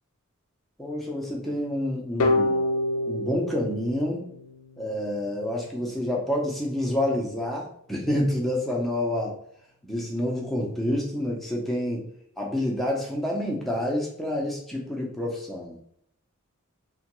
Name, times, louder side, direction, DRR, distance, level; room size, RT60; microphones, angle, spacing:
voice 1, 0.8-2.6 3.1-4.2 4.8-9.3 9.8-12.0 12.4-15.7, left 1 dB, ahead, -3 dB, 0.6 m, -28 dB
sound 1, 2.2-5.0, left 2 dB, 90° left, 0.4 m, -27 dB
3.1 x 2.2 x 3.0 m, 0.69 s
head